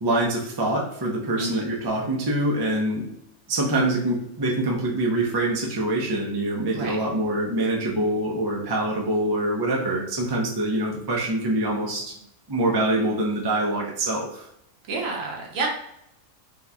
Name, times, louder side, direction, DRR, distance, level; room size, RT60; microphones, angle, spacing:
voice 1, 0.0-3.1 3.5-12.2 12.5-14.4, right 1 dB, 35° right, -2 dB, 0.3 m, -25 dB
voice 2, 14.9-15.7, right 3 dB, 65° right, 0 dB, 1.2 m, -29 dB
3.7 x 2.8 x 2.3 m, 0.79 s
omnidirectional pair, 1.6 m